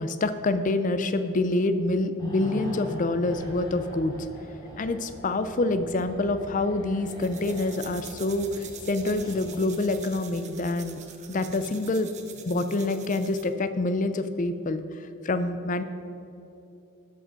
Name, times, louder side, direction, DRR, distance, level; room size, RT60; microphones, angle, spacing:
voice 1, 0.0-4.2 4.8-11.0 11.3-12.1 12.5-15.8, left 2 dB, 35° left, 11 dB, 0.4 m, -27 dB
sound 1, 2.2-10.7 11.0-11.2, equal, 20° left, 2.2 m, -43 dB
sound 2, 7.1-13.5, right 8 dB, 35° right, 0.6 m, -45 dB
12.5 x 5.1 x 5.1 m, 2.8 s
head